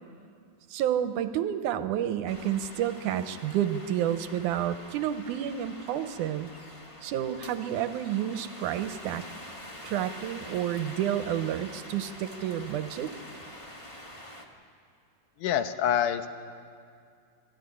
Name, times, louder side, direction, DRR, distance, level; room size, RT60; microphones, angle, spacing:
voice 1, 0.7-6.5 7.0-9.2 9.8-13.1, right 10 dB, 85° right, 10 dB, 2.3 m, -30 dB
sound 1, 2.3-14.5, left 1 dB, 30° left, 0.5 m, -46 dB
voice 2, 15.4-16.3, left 9 dB, 80° left, 9 dB, 2.4 m, -26 dB
25.5 x 13.5 x 9.8 m, 2.3 s
omnidirectional pair, 3.6 m